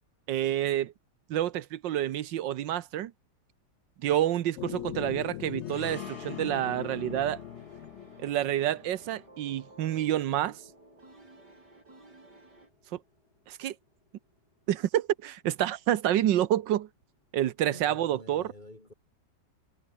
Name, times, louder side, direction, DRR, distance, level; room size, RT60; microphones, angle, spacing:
voice 1, 0.3-0.9 1.3-3.1 4.0-7.4 8.2-10.6 13.5-13.7 14.7-16.9 17.3-18.4, right 12 dB, 90° right, 1.6 m, -28 dB
sound 1, 4.6-9.2, left 13 dB, 85° left, 0.6 m, -40 dB
sound 2, 5.6-14.1 14.3-14.5, left 3 dB, 60° left, 4.7 m, -52 dB
sound 3, 5.8-12.7, right 2 dB, 70° right, 8.0 m, -55 dB
voice 2, 17.6-18.9, left 1 dB, 25° left, 4.0 m, -49 dB
omnidirectional pair, 1.9 m